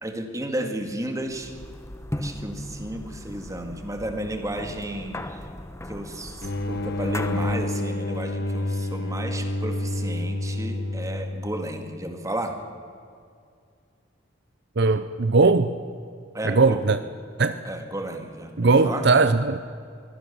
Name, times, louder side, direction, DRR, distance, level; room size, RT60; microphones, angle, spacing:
voice 1, 0.0-1.6 2.2-5.4 5.9-12.6 16.3-16.8 17.6-19.1, right 1 dB, 15° right, 2.1 m, -33 dB
sound 1, 1.3-7.8, left 1 dB, 15° left, 0.9 m, -37 dB
sound 2, 6.4-11.8, left 1 dB, 55° left, 1.1 m, -28 dB
voice 2, 14.8-15.7 16.4-17.0 17.4-17.6 18.6-19.6, right 3 dB, 60° right, 0.7 m, -19 dB
23.0 x 16.5 x 7.0 m
head